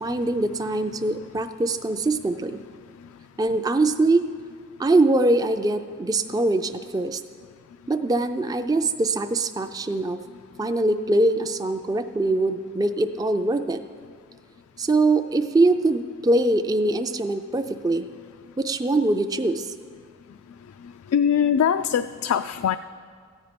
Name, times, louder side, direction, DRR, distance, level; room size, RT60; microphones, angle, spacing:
voice 1, 0.0-2.6 3.4-4.3 4.8-7.2 7.9-10.2 10.6-13.8 14.8-18.1 18.6-19.7, right 2 dB, 15° right, 8 dB, 0.3 m, -23 dB
voice 2, 21.1-22.8, left 8 dB, 85° left, 10 dB, 0.3 m, -22 dB
14.0 x 9.1 x 5.1 m, 2.1 s
head